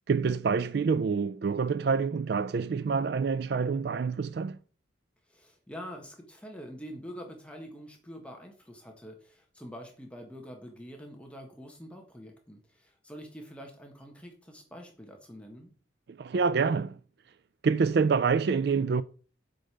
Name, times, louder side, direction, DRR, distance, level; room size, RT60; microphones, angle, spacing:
voice 1, 0.1-4.6 16.1-17.0 17.6-19.0, right 5 dB, 55° right, 0.4 m, -27 dB
voice 2, 5.3-15.7, equal, 5° left, 1.4 m, -46 dB
7.8 x 5.2 x 6.6 m
head